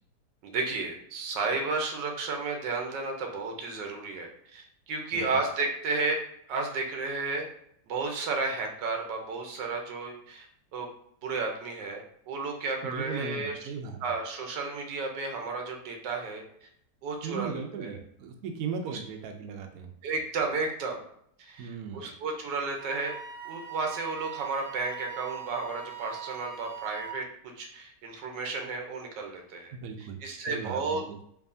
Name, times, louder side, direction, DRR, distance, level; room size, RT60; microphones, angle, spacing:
voice 1, 0.4-6.2 6.5-7.4 7.9-10.9 11.2-13.6 14.0-16.4 17.0-18.0 18.9-19.0 20.0-21.0 21.4-21.7 21.9-23.1 23.4-27.2 27.6-31.0, right 3 dB, 90° right, 2 dB, 1.4 m, -33 dB
voice 2, 12.8-14.0 17.2-19.9 21.6-22.1 29.7-30.2 30.5-31.2, right 5 dB, 70° right, 4 dB, 0.9 m, -37 dB
Wind instrument woodwind instrument, 22.8-27.2, right 10 dB, 20° left, 1.4 m, -41 dB
4.6 x 2.7 x 2.6 m, 0.69 s
omnidirectional pair, 1.8 m